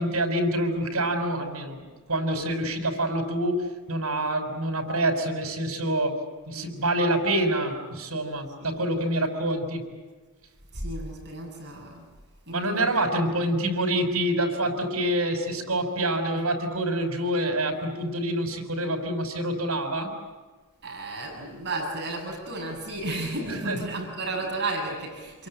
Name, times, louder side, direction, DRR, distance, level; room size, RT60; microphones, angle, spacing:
voice 1, 0.0-1.8 2.1-6.2 6.5-9.8 12.5-20.1 23.7-23.8, right 1 dB, 75° right, 5 dB, 5.9 m, -26 dB
voice 2, 10.7-12.1 12.5-13.6 20.8-25.5, right 2 dB, 50° right, 1 dB, 7.3 m, -33 dB
28.0 x 23.0 x 8.8 m, 1.3 s
head